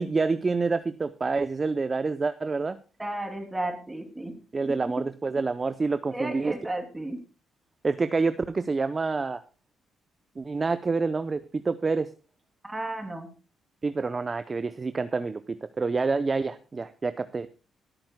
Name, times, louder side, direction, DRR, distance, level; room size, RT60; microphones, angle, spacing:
voice 1, 0.0-2.8 4.5-6.5 7.8-9.4 10.4-12.1 13.8-17.5, right 4 dB, 30° right, 12 dB, 0.6 m, -27 dB
voice 2, 3.0-4.3 4.7-4.9 6.1-7.2 12.6-13.3, right 1 dB, 15° right, 4 dB, 2.9 m, -33 dB
25.0 x 8.9 x 2.2 m, 0.33 s
cardioid pair, 90°, 0 cm